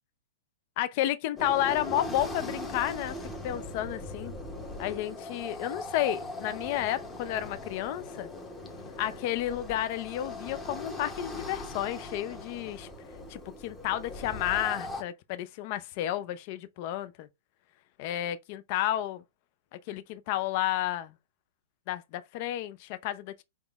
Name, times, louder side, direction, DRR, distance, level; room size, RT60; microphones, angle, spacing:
voice 1, 0.8-3.2 3.4-4.3 4.8-8.3 9.0-12.9 13.3-17.3 18.0-19.2 19.9-21.1 21.9-23.4, left 13 dB, 40° left, 0.3 m, -31 dB
sound 1, 1.4-15.0, left 2 dB, 10° left, 0.7 m, -40 dB
3.9 x 3.5 x 2.3 m
hypercardioid pair, 150°, 0 cm